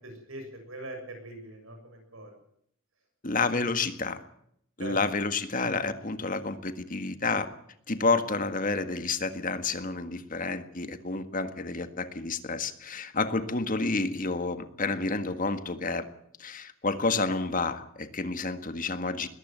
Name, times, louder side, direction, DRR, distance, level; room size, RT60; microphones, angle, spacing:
voice 1, 0.0-2.4 4.8-5.0 11.1-11.2, right 1 dB, 90° right, 4 dB, 7.1 m, -42 dB
voice 2, 3.2-4.2 4.8-7.5 7.9-16.1 16.4-19.3, left 3 dB, 40° left, 9 dB, 1.7 m, -29 dB
21.0 x 14.5 x 9.3 m, 0.71 s
head